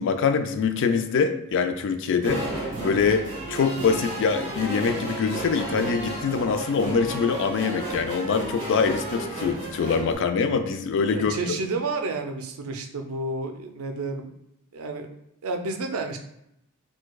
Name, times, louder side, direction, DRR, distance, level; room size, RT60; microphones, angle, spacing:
voice 1, 0.0-2.4 2.8-11.3, left 5 dB, 60° left, 9 dB, 0.3 m, -24 dB
sound 1, 2.2-10.1, right 2 dB, 35° right, 1.0 m, -33 dB
voice 2, 11.1-14.3 14.7-15.1 15.4-16.2, right 3 dB, 75° right, 5 dB, 0.5 m, -30 dB
4.5 x 2.2 x 2.3 m, 0.78 s
head